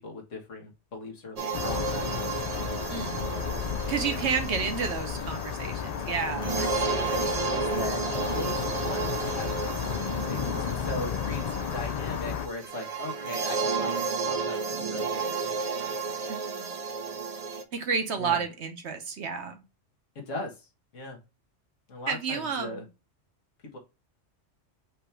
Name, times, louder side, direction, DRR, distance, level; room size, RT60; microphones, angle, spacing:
voice 1, 0.0-2.0 6.5-13.9 14.2-15.7 16.1-16.2 18.2-18.4 20.3-20.5 20.9-21.2 21.9-22.8 23.7-23.8, left 2 dB, 90° left, 1 dB, 1.8 m, -39 dB
sound 1, 1.4-17.6, right 4 dB, 40° right, 0.6 m, -32 dB
sound 2, 1.5-12.5, left 8 dB, 75° left, 0.3 m, -33 dB
voice 2, 2.9-3.2 3.9-6.6 16.3-16.7 17.7-19.6 22.1-22.9, right 6 dB, 65° right, 6 dB, 1.2 m, -31 dB
5.2 x 2.9 x 3.3 m, 0.27 s
omnidirectional pair, 1.2 m